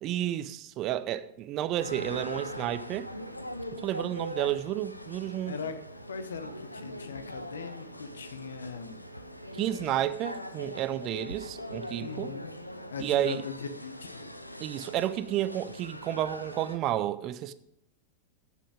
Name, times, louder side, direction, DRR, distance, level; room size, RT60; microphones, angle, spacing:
voice 1, 0.0-3.1 3.8-5.6 9.5-12.4 13.0-13.4 14.6-17.5, right 12 dB, 35° right, 0.7 m, -31 dB
sound 1, 1.8-16.8, equal, 85° left, 0.8 m, -42 dB
voice 2, 6.1-9.0 12.0-12.5 12.9-14.3, left 5 dB, 70° left, 1.1 m, -39 dB
11.5 x 8.5 x 5.1 m
figure-of-eight pair, 90°, 0 cm